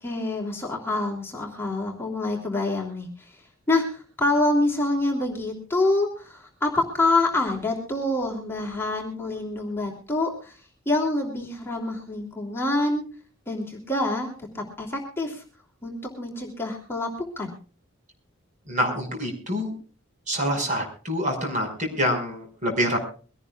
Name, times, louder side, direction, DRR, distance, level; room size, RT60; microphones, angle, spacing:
voice 1, 0.0-3.4 3.7-10.6 10.9-13.0 13.5-14.3 14.5-15.4 15.8-17.1 17.4-17.6, left 2 dB, 10° left, -1 dB, 3.0 m, -26 dB
voice 2, 18.7-19.7 20.3-23.0, equal, 40° right, 3 dB, 5.3 m, -26 dB
23.5 x 17.5 x 2.4 m, 0.38 s
head